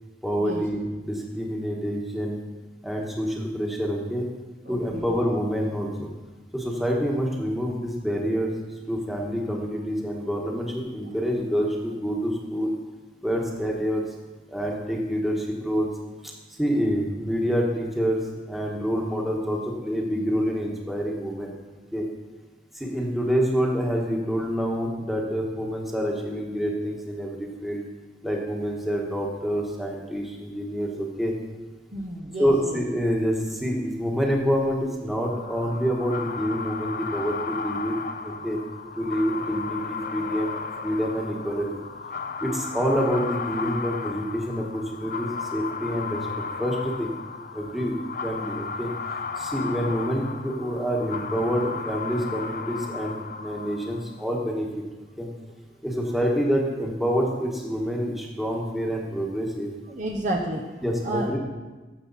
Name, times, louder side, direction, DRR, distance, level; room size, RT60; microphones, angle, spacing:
voice 1, 0.2-2.4 2.8-4.3 4.7-6.1 6.5-8.5 8.9-12.8 13.2-14.0 14.5-15.9 16.2-21.5 21.9-22.0 22.7-27.8 28.2-31.3 32.4-37.9 38.2-38.6 38.9-41.7 42.4-46.2 46.6-47.1 47.5-48.0 48.2-48.9 49.4-54.7 55.2-55.3 55.8-59.7 60.8-61.4, equal, ahead, -2 dB, 1.4 m, -27 dB
voice 2, 4.7-5.1 31.9-32.8 59.9-61.4, right 1 dB, 45° right, 0 dB, 0.8 m, -31 dB
sound 1, 35.2-54.1, left 5 dB, 55° left, 0.6 m, -34 dB
13.0 x 7.5 x 4.1 m, 1.2 s
head